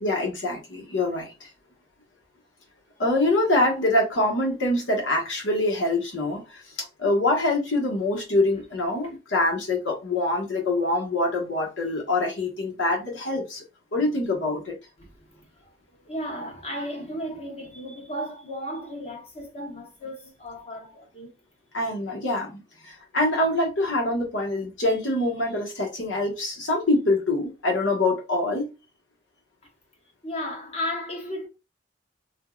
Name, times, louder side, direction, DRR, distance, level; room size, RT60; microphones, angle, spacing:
voice 1, 0.0-1.5 3.0-13.6 13.9-14.8 21.7-28.7, left 2 dB, 85° left, 1.3 m, -25 dB
voice 2, 15.0-15.8 16.0-21.3 30.2-31.5, equal, 35° left, 0.9 m, -35 dB
3.5 x 2.6 x 2.4 m
head